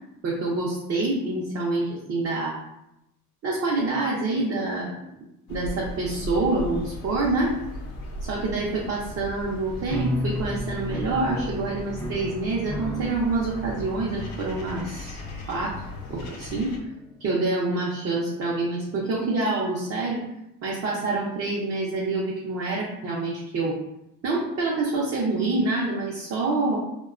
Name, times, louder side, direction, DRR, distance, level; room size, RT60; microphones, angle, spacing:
voice 1, 0.2-2.6 3.4-4.9 5.5-7.5 8.2-15.2 15.5-15.8 16.1-16.7 17.2-20.2 20.6-23.7 24.2-26.8, right 2 dB, 45° right, -4 dB, 0.6 m, -26 dB
sound 1, 5.5-16.8, left 1 dB, 75° left, 0.6 m, -37 dB
sound 2, 9.9-18.2, left 1 dB, 5° left, 0.5 m, -36 dB
2.7 x 2.2 x 2.4 m, 0.87 s
cardioid pair, 95°, 34 cm